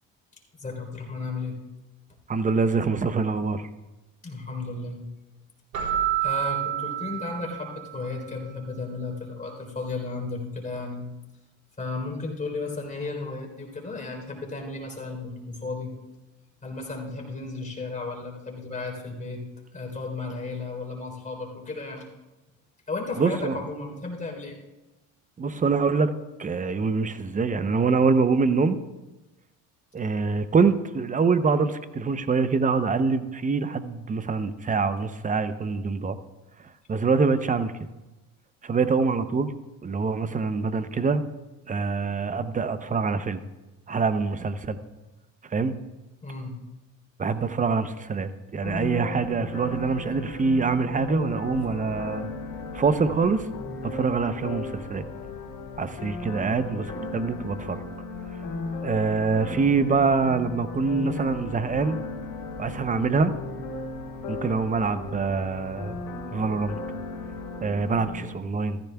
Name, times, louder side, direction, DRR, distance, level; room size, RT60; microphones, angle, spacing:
voice 1, 0.6-1.6 4.2-5.0 6.2-11.1 11.8-15.9 16.6-19.4 19.7-22.1 22.9-24.6 46.2-46.6 51.6-51.7, left 3 dB, 20° left, 1 dB, 3.7 m, -34 dB
voice 2, 2.3-3.7 23.2-23.6 25.4-26.1 26.4-28.8 29.9-36.2 36.9-37.7 38.6-39.5 39.8-41.2 41.7-43.4 43.9-44.8 45.5-45.7 47.2-52.3 52.7-53.5 53.8-55.1 55.8-57.8 58.8-62.0 62.6-63.3 64.3-66.0 66.3-66.8 67.6-68.8, right 4 dB, 20° right, 12 dB, 0.7 m, -25 dB
Keyboard (musical), 5.7-8.1, right 11 dB, 70° right, 3.9 m, -28 dB
sound 1, 48.6-68.2, left 3 dB, 65° left, 3.2 m, -36 dB
14.5 x 14.5 x 2.3 m, 1.1 s
supercardioid pair, 85°, 36 cm